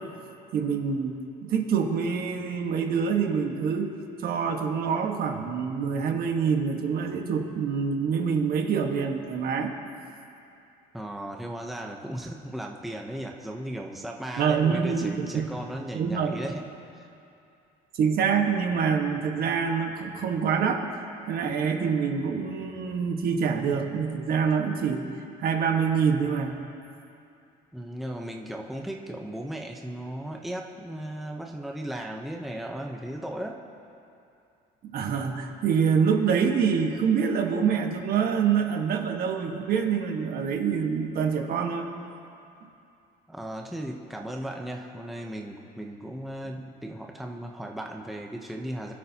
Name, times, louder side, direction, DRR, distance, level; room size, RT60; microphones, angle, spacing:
voice 1, 0.5-3.9 4.2-9.7 14.4-15.5 15.9-16.4 17.9-20.9 21.3-25.0 25.4-26.6 34.8-41.9, right 6 dB, 55° right, 3 dB, 1.5 m, -26 dB
voice 2, 10.9-17.1 27.7-33.6 43.3-48.9, right 1 dB, ahead, 1 dB, 0.8 m, -36 dB
25.0 x 12.5 x 2.9 m, 2.6 s
cardioid pair, 125°, 19 cm